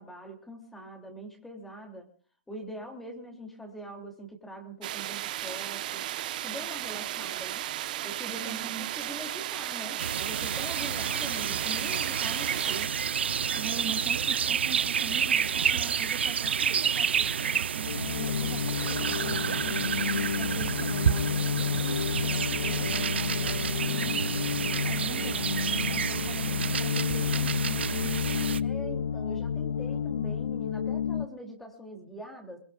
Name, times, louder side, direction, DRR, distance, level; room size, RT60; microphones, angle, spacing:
voice 1, 0.0-2.1 2.5-6.0 6.4-7.7 8.0-13.0 28.6-32.6, equal, 5° left, 2 dB, 3.1 m, -43 dB
sound 1, 4.8-12.9, right 13 dB, 45° right, 1.2 m, -35 dB
voice 2, 8.3-9.1 13.5-19.7 20.3-24.3 24.8-28.1, right 8 dB, 25° right, 4 dB, 3.3 m, -43 dB
sound 2, 10.0-28.6, right 7 dB, 75° right, 0.8 m, -29 dB
sound 3, 17.8-31.3, left 7 dB, 80° left, 0.7 m, -30 dB
22.5 x 22.0 x 2.5 m, 0.41 s
hypercardioid pair, 150°, 6 cm